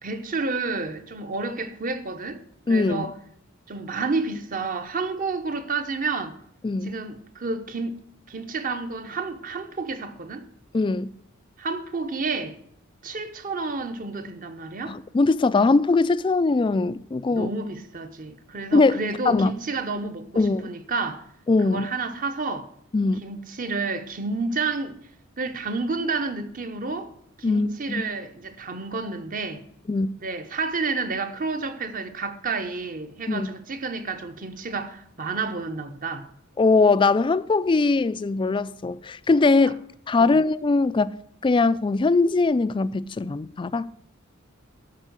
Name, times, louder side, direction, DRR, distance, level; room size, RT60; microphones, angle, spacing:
voice 1, 0.0-2.4 2.7-3.1 3.7-6.4 6.9-10.5 11.6-12.6 13.0-15.0 17.3-21.3 21.6-22.7 23.2-25.0 25.4-27.1 27.4-29.6 30.2-36.3 40.2-40.4, right 4 dB, 40° right, 0.9 m, -30 dB
voice 2, 2.7-3.1 6.6-6.9 10.7-11.1 14.9-17.5 18.7-19.5 20.4-20.7 21.5-21.9 22.9-23.2 27.4-28.0 29.9-30.1 33.3-33.5 36.6-39.8 40.1-41.1 41.4-43.9, left 3 dB, 25° left, 0.3 m, -21 dB
12.0 x 4.5 x 7.9 m
head